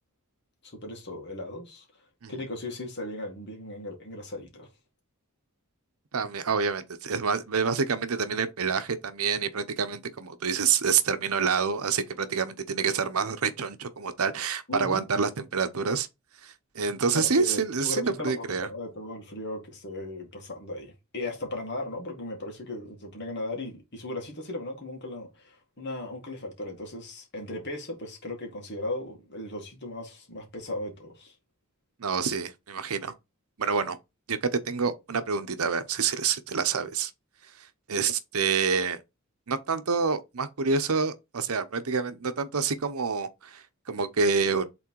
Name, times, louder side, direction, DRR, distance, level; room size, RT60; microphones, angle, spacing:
voice 1, 0.6-1.9 2.3-4.7 14.7-15.1 17.1-31.3, left 2 dB, 50° left, 2.1 m, -37 dB
voice 2, 6.1-16.1 16.4-18.7 32.0-33.1 33.6-34.0 34.3-37.1 37.9-39.0 39.5-43.6 43.9-44.6, right 5 dB, 80° right, 0.8 m, -27 dB
6.1 x 3.9 x 4.6 m
head